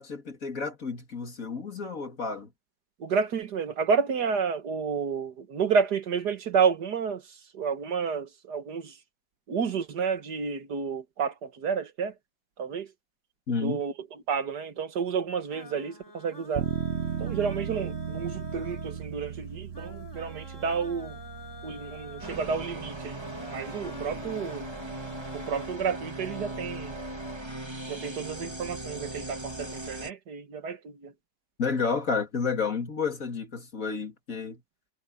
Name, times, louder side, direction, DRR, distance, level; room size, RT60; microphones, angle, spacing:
voice 1, 0.0-2.5 13.5-13.8 31.6-34.6, left 5 dB, 55° left, 3.0 m, -31 dB
voice 2, 3.0-9.0 9.5-12.1 12.6-12.9 13.6-13.9 14.3-16.7 17.2-21.2 21.6-23.2 23.5-24.7 25.3-27.0 27.9-31.1, right 6 dB, 85° right, 2.1 m, -30 dB
sound 1, 15.5-25.7, left 3 dB, 15° left, 3.1 m, -47 dB
sound 2, 16.5-27.3, right 8 dB, 50° right, 1.2 m, -38 dB
sound 3, 22.2-30.1, right 2 dB, 15° right, 2.7 m, -38 dB
omnidirectional pair, 1.7 m